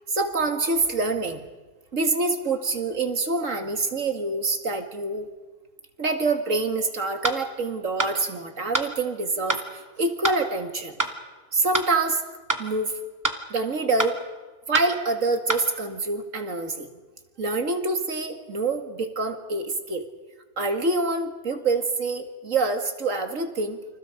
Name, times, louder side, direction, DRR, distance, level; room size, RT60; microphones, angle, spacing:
voice 1, 0.1-1.4 1.9-5.3 6.0-11.0 11.5-12.2 12.6-12.9 13.5-14.2 14.7-16.9 17.4-20.0 20.6-23.8, right 3 dB, 80° right, 6 dB, 2.6 m, -26 dB
sound 1, 7.2-7.4 8.0-8.1 8.7-8.9 9.5-9.6 10.2-10.4 11.0-11.1 11.7-11.9 12.5-12.6 13.2-13.4 14.0-14.1 14.7-14.9 15.5-15.6, right 1 dB, 15° right, 2.0 m, -25 dB
29.5 x 27.0 x 5.2 m, 1.3 s
omnidirectional pair, 1.3 m